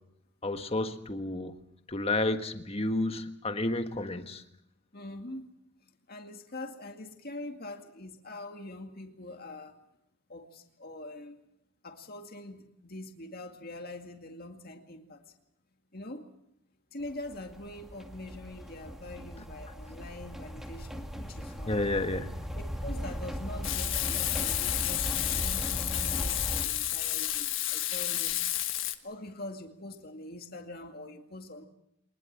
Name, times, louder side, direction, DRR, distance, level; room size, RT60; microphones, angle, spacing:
voice 1, 0.4-1.5 1.9-4.4 21.7-22.3, left 2 dB, 30° left, 1.5 m, -31 dB
voice 2, 4.9-5.5 6.1-9.8 10.3-11.4 11.8-15.2 15.9-16.3 16.9-21.8 22.5-28.4 29.0-31.7, left 2 dB, 45° left, 2.2 m, -44 dB
sound 1, 17.0-26.7, equal, ahead, 2.1 m, -38 dB
Frying (food), 23.6-28.9, left 13 dB, 65° left, 1.5 m, -31 dB
24.0 x 20.5 x 7.4 m
head